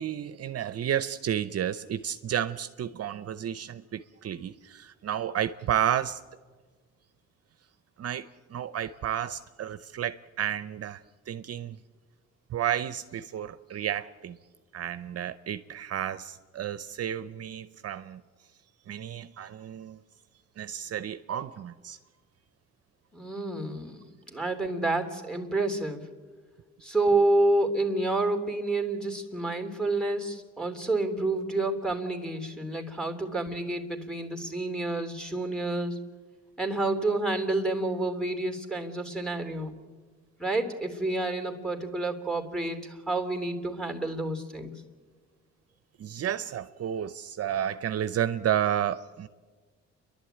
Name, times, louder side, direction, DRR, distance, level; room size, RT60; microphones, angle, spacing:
voice 1, 0.0-6.2 8.0-11.8 12.5-14.4 14.7-18.2 18.9-20.0 20.6-22.0 46.0-49.3, right 10 dB, 55° right, 12 dB, 0.7 m, -31 dB
voice 2, 23.1-24.0 24.3-26.0 26.8-36.0 36.6-39.7 40.4-44.7, right 2 dB, ahead, 4 dB, 3.2 m, -29 dB
29.5 x 11.5 x 9.0 m, 1.4 s
cardioid pair, 90°, 30 cm